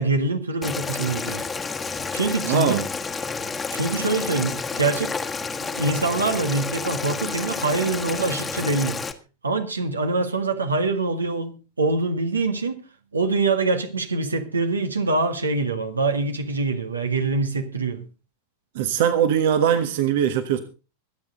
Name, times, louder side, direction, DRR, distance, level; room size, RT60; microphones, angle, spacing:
voice 1, 0.0-1.4 2.1-2.8 3.7-5.1 5.7-9.0 9.4-12.8 13.1-18.0, right 3 dB, 75° right, 1.8 m, -24 dB
Boiling, 0.6-9.1, left 4 dB, 15° left, 1.5 m, -30 dB
voice 2, 2.4-2.8 18.7-20.6, right 9 dB, 55° right, 1.4 m, -21 dB
24.5 x 8.9 x 3.9 m
figure-of-eight pair, 90°, 0 cm